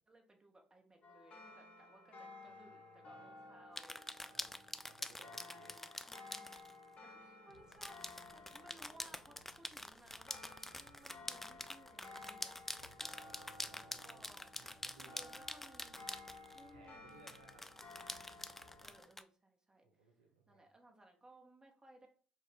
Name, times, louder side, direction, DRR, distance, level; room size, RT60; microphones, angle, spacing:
voice 1, 0.1-4.2 5.1-6.7 7.0-12.6 13.7-14.7 15.0-16.0 16.5-17.0 18.8-20.1 20.5-22.1, right 1 dB, 20° right, 2 dB, 1.0 m, -62 dB
sound 1, 1.0-19.1, left 3 dB, 45° left, 1.0 m, -56 dB
voice 2, 2.4-3.3 4.2-5.8 7.6-7.7 12.8-15.2 16.7-17.7 19.8-20.6, right 3 dB, 85° right, 1 dB, 0.5 m, -64 dB
sound 2, 3.8-6.7 7.7-16.7 17.3-19.2, left 1 dB, 10° left, 0.3 m, -46 dB
sound 3, 7.5-19.0, left 1 dB, 85° left, 0.7 m, -68 dB
4.1 x 2.5 x 3.8 m, 0.43 s
figure-of-eight pair, 45°, 3 cm